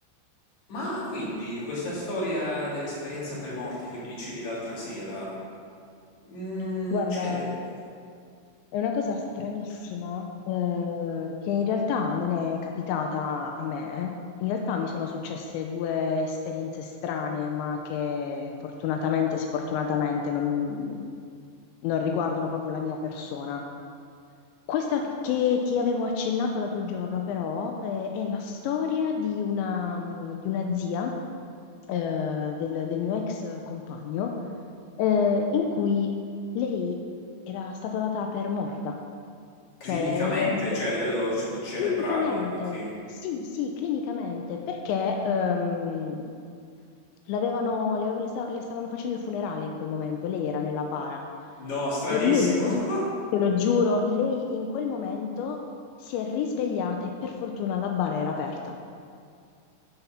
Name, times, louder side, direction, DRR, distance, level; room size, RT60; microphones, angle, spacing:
voice 1, 0.7-5.3 6.2-7.5 39.8-42.9 51.5-53.0, left 1 dB, 40° left, -7 dB, 3.7 m, -31 dB
voice 2, 6.9-7.6 8.7-14.1 14.4-21.0 21.8-23.6 24.7-31.1 31.9-34.3 35.0-36.1 36.6-37.0 37.5-39.0 39.9-40.6 41.8-42.8 43.1-46.3 47.3-51.2 52.1-52.8 53.3-55.6 56.0-58.7, left 6 dB, 85° left, 2 dB, 2.7 m, -28 dB
9.8 x 7.9 x 5.8 m, 2.3 s
omnidirectional pair, 5.8 m